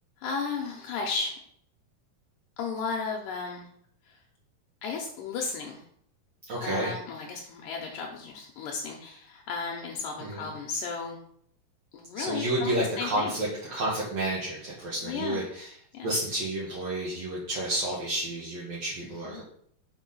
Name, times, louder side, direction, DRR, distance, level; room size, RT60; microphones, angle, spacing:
voice 1, 0.2-1.4 2.6-3.7 4.8-5.8 6.6-11.2 11.9-13.3 15.0-15.5 15.9-16.1 19.0-19.4, left 4 dB, 75° left, 0 dB, 2.3 m, -34 dB
voice 2, 6.5-6.9 10.2-10.5 12.1-15.7 16.0-19.4, right 1 dB, 55° right, -6 dB, 2.5 m, -30 dB
6.0 x 4.8 x 5.4 m, 0.65 s
omnidirectional pair, 4.1 m